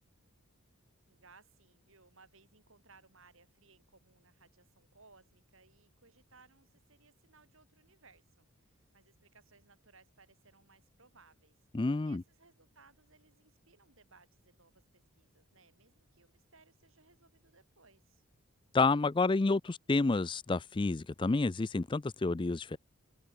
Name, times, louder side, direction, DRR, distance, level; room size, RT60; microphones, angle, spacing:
voice 1, 1.1-11.6 12.0-18.2, right 4 dB, 65° right, 7.4 m, -64 dB
voice 2, 11.7-12.2 18.7-22.8, left 3 dB, 20° left, 0.4 m, -29 dB
head